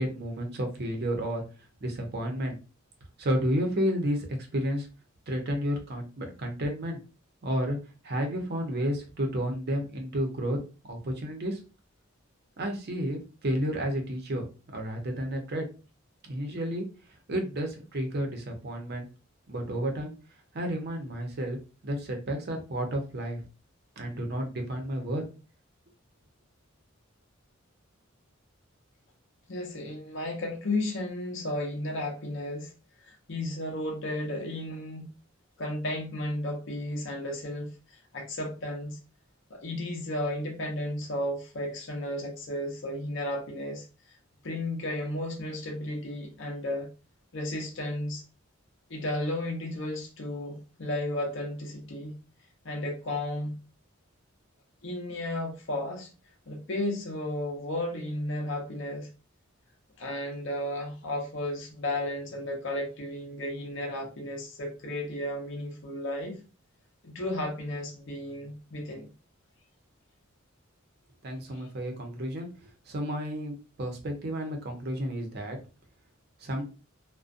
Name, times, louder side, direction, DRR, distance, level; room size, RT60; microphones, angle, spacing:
voice 1, 0.0-1.4 1.8-2.6 3.2-4.9 5.3-7.0 7.4-7.8 8.0-10.6 10.8-11.6 12.6-14.4 14.7-15.7 16.2-16.9 17.3-19.1 19.5-20.1 20.5-21.6 21.8-23.4 24.0-25.2 71.2-75.6 76.4-76.6, equal, 50° right, 0.6 m, -31 dB
voice 2, 29.5-32.7 33.0-35.1 35.6-39.0 39.5-43.8 44.4-46.9 47.3-48.2 48.9-52.2 52.6-53.5 54.8-56.1 56.5-59.1 60.0-66.4 67.0-69.1, left 1 dB, 65° left, 0.7 m, -33 dB
2.4 x 2.1 x 2.4 m
head